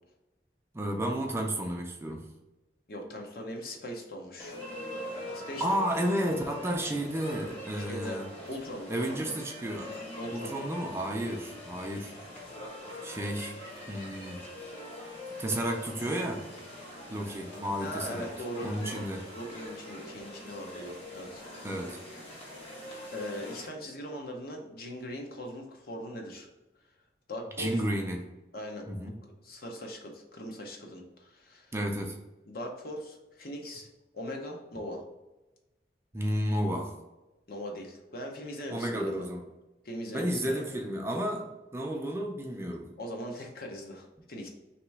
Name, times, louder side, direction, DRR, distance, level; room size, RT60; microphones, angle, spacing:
voice 1, 0.7-2.3 5.6-8.3 8.9-9.9 10.3-12.1 13.0-13.5 13.9-14.4 15.4-16.4 17.1-18.3 18.6-19.2 21.6-22.0 27.6-28.2 28.9-29.1 31.7-32.2 36.1-36.9 38.7-39.4 40.1-42.9, right 1 dB, 15° right, 2 dB, 0.4 m, -32 dB
voice 2, 2.9-4.6 5.3-5.9 7.8-9.3 10.2-10.5 17.8-19.0 19.3-21.4 23.1-26.5 27.3-27.8 28.5-28.9 29.4-31.7 32.5-33.9 34.1-35.0 37.5-39.3 39.8-40.6 43.0-44.5, equal, 55° left, 1 dB, 0.7 m, -40 dB
sound 1, 4.4-23.7, left 1 dB, 35° left, 1.1 m, -43 dB
3.1 x 2.9 x 4.6 m, 1.0 s
head